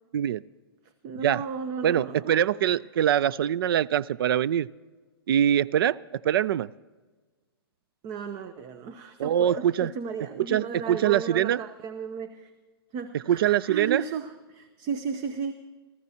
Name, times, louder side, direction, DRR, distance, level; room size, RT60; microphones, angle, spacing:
voice 1, 1.0-2.3 8.0-12.5 12.9-15.5, right 6 dB, 30° right, 9 dB, 0.8 m, -34 dB
voice 2, 1.8-4.7 5.3-6.0 6.2-6.7 9.2-9.9 10.4-11.6 13.1-14.0, right 10 dB, 65° right, 19 dB, 0.4 m, -23 dB
28.0 x 14.5 x 2.8 m, 1.3 s
hypercardioid pair, 130°, 13 cm